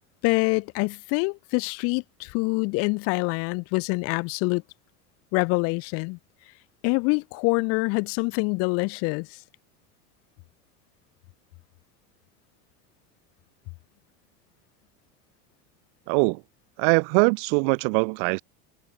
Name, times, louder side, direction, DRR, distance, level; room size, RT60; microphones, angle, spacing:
voice 1, 0.2-4.6 5.3-6.2 6.8-9.4, left 29 dB, 50° left, 0.6 m, -25 dB
voice 2, 16.1-16.4 16.8-18.4, right 39 dB, 60° right, 0.7 m, -22 dB
supercardioid pair, 140°, 30 cm